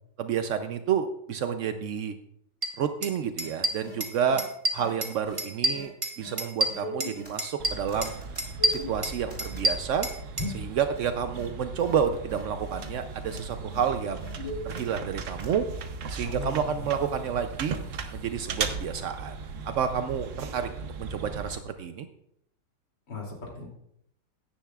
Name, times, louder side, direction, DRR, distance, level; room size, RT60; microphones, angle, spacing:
voice 1, 0.2-2.1 2.8-4.4 4.7-5.9 6.2-8.1 8.7-10.1 10.5-14.3 14.6-15.6 16.1-17.8 18.1-19.4 19.7-22.1, right 7 dB, 80° right, 8 dB, 0.6 m, -29 dB
sound 1, 2.6-2.7 3.0-3.1 3.4-4.1 4.4-5.1 5.4-7.1 7.4-8.1 8.4-10.5, right 1 dB, 25° right, 0.7 m, -28 dB
sound 2, 3.4-3.5 3.8-3.9 4.3-4.4 4.8-4.9 5.2-5.4 5.7-5.9 6.2-6.3 6.7-7.6 7.9-9.7 10.4-10.7 10.9-11.0 11.3-11.5 11.8-11.9 12.3-12.4 12.8-12.9 13.2-13.4 13.7-13.8 14.2-15.1 15.4-15.5, equal, 15° left, 3.3 m, -39 dB
sound 3, 7.6-21.6, right 4 dB, 55° right, 1.0 m, -37 dB
voice 2, 16.2-16.8 23.1-23.7, left 3 dB, 70° left, -2 dB, 3.5 m, -38 dB
16.0 x 10.0 x 2.4 m, 0.73 s
omnidirectional pair, 2.0 m